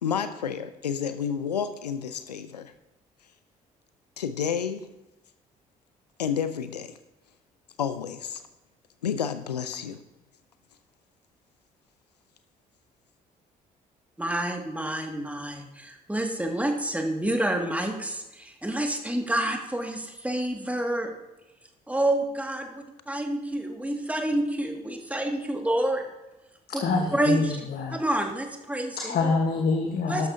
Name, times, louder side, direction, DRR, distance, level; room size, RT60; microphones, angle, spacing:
voice 1, 0.0-2.7 4.2-4.9 6.2-6.9 7.8-8.4 9.0-10.0, left 7 dB, 85° left, 12 dB, 0.7 m, -30 dB
voice 2, 14.2-21.1 21.9-26.0 27.1-27.4 27.9-29.3 30.1-30.3, right 1 dB, 5° right, 2 dB, 2.2 m, -28 dB
voice 3, 26.7-28.0 29.0-30.3, left 4 dB, 50° left, 3 dB, 1.4 m, -26 dB
13.0 x 12.5 x 2.8 m, 0.97 s
figure-of-eight pair, 45°, 20 cm